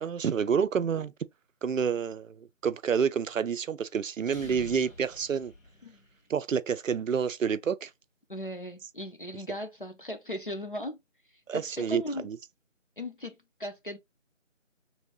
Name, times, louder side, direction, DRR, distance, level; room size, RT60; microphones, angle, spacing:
voice 1, 0.0-1.1 1.6-5.5 6.3-7.9 11.5-12.4, right 7 dB, 80° right, 0.5 m, -29 dB
sound 1, 4.2-6.3, left 2 dB, 85° left, 1.5 m, -47 dB
voice 2, 8.3-11.0 11.5-12.3 13.0-14.0, left 1 dB, 45° left, 0.5 m, -37 dB
3.1 x 2.6 x 2.9 m
figure-of-eight pair, 170°, 39 cm